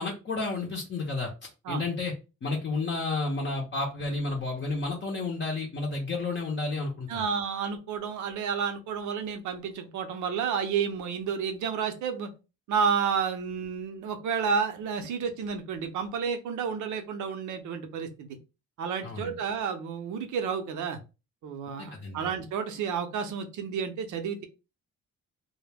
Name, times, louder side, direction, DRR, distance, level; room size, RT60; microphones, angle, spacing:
voice 1, 0.0-2.1 2.4-7.2 19.0-19.3 21.8-22.3, left 3 dB, 35° left, -1 dB, 0.6 m, -31 dB
voice 2, 7.1-12.3 12.7-18.4 18.8-21.0 21.4-24.4, right 6 dB, 75° right, 7 dB, 0.6 m, -31 dB
2.1 x 2.0 x 3.2 m, 0.30 s
cardioid pair, 90°, 30 cm